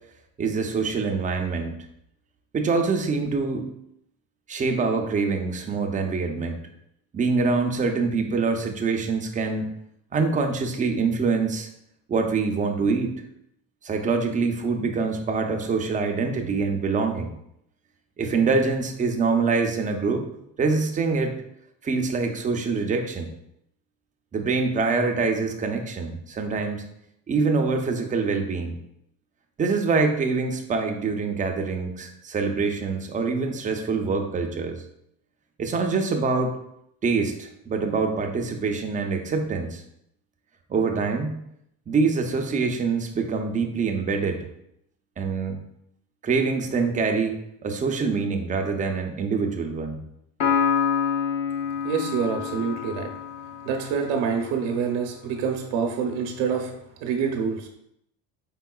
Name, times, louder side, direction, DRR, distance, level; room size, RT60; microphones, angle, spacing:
voice 1, 0.4-1.7 2.5-3.7 4.5-6.5 7.1-9.7 10.1-11.7 12.1-13.1 13.8-17.3 18.2-20.2 20.6-21.3 21.8-23.3 24.3-26.8 27.3-28.7 29.6-34.8 35.6-36.6 37.0-39.8 40.7-41.4 41.9-44.5 45.2-45.6 46.2-50.0, right 4 dB, 20° right, 4 dB, 0.5 m, -25 dB
Piano, 50.4-54.0, left 7 dB, 50° left, 0.8 m, -26 dB
voice 2, 51.8-53.1 53.6-56.7 57.0-57.7, right 6 dB, 80° right, 2 dB, 0.7 m, -26 dB
4.6 x 3.6 x 2.3 m, 0.76 s
cardioid pair, 110°, 37 cm